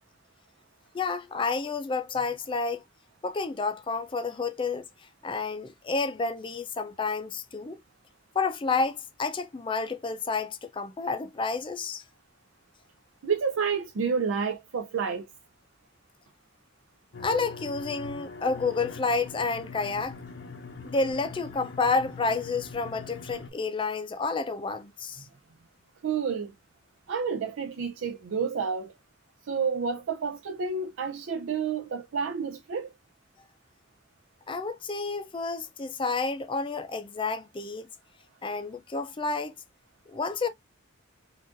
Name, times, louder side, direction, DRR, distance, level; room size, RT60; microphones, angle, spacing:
voice 1, 0.9-2.8 3.2-4.9 5.2-7.8 8.3-12.0 17.2-20.2 20.8-25.2 34.5-37.9 38.4-39.5 40.1-40.5, left 4 dB, 25° left, 0.4 m, -30 dB
voice 2, 13.2-15.3 26.0-26.5 27.1-28.9 29.4-32.9, right 6 dB, 90° right, 0.4 m, -29 dB
sound 1, 17.1-23.5, left 4 dB, 70° left, 0.7 m, -42 dB
3.9 x 2.4 x 2.5 m
head